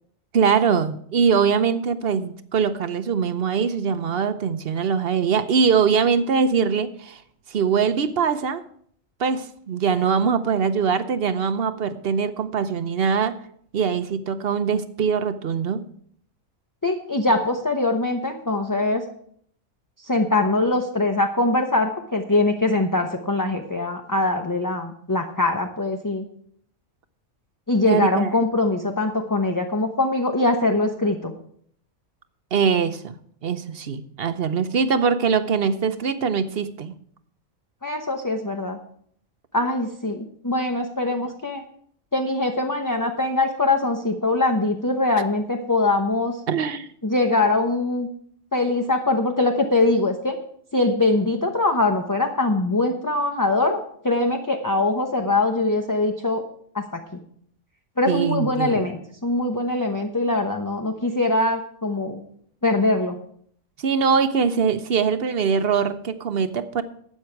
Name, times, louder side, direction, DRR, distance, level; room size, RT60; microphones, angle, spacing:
voice 1, 0.3-7.2 7.5-8.6 9.2-13.4 13.7-15.8 27.8-28.3 32.5-33.2 33.4-36.9 46.5-46.9 58.1-58.8 63.8-66.8, right 6 dB, 55° right, 12 dB, 0.9 m, -22 dB
voice 2, 16.8-19.0 20.0-26.2 27.7-31.3 37.8-38.8 39.5-41.6 42.1-46.4 47.0-48.1 48.5-50.4 50.7-53.8 54.0-56.4 56.7-57.0 58.0-62.2 62.6-63.2, left 2 dB, 15° left, 3 dB, 0.8 m, -22 dB
13.0 x 8.7 x 4.6 m, 0.63 s
omnidirectional pair, 1.4 m